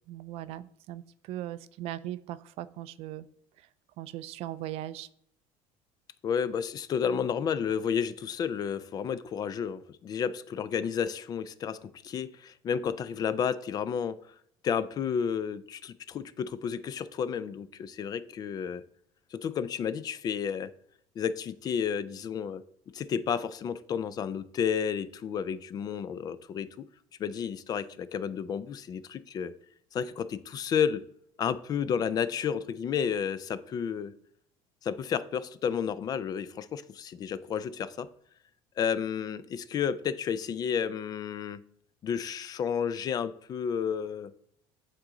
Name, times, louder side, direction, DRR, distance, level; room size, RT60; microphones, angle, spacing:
voice 1, 0.1-1.0 1.3-3.3 4.0-5.1, right 14 dB, 60° right, 16 dB, 0.4 m, -38 dB
voice 2, 6.2-14.2 14.6-18.8 19.3-20.7 21.2-22.6 22.9-26.8 27.2-29.5 29.9-31.0 31.4-34.1 34.8-38.1 38.8-41.6 42.0-44.3, left 7 dB, 35° left, 16 dB, 0.3 m, -31 dB
8.9 x 3.8 x 3.8 m, 0.67 s
cardioid pair, 140°, 12 cm